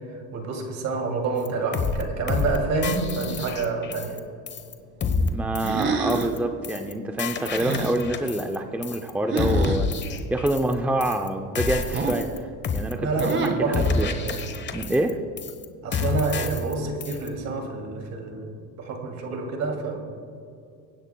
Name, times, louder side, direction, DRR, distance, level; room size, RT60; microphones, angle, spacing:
voice 1, 0.0-4.2 13.0-14.4 15.8-20.0, right 3 dB, 50° right, 3 dB, 2.6 m, -28 dB
sound 1, 1.5-1.6 1.7-2.0 2.3-2.6 2.8-4.2 4.5-4.7 5.0-5.3 5.6-5.8 6.1-6.4 6.6-6.9 7.2-8.6 8.8-9.1 9.4-10.7 11.0-11.3 11.6-12.4 12.6-12.9 13.2-13.5 13.7-15.1 15.4-15.7 15.9-16.7 17.0-17.3, left 4 dB, 30° left, 1.1 m, -28 dB
voice 2, 5.3-12.5 12.7-14.1 14.7-15.2, right 1 dB, 5° right, 5 dB, 0.5 m, -27 dB
sound 2, 5.6-6.4 7.5-8.0 9.3-9.8 11.9-12.3 13.2-13.7, right 4 dB, 35° right, 1.4 m, -27 dB
23.0 x 10.5 x 2.3 m, 2.5 s
cardioid pair, 125°, 34 cm